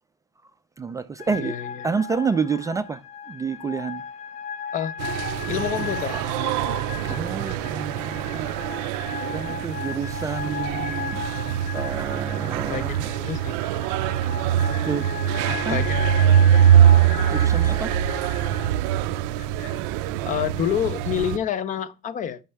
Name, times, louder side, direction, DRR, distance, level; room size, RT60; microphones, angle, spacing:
voice 1, 0.8-1.5 1.8-3.0 3.3-4.0 4.8-4.9 7.0-11.2 11.7-13.4 14.8-15.1 15.4-15.8 17.0-17.9 19.7-20.0, right 5 dB, 15° right, 0.3 m, -29 dB
sound 1, 1.2-18.7, left 7 dB, 70° left, 0.8 m, -36 dB
voice 2, 1.3-1.9 4.7-4.9 5.5-6.6 12.7-13.6 15.7-15.9 17.2-17.4 19.4-19.8 20.3-22.4, left 9 dB, 35° left, 0.6 m, -28 dB
sound 2, 5.0-21.4, right 10 dB, 80° right, 0.5 m, -23 dB
9.2 x 5.5 x 3.4 m
cardioid pair, 130°, 21 cm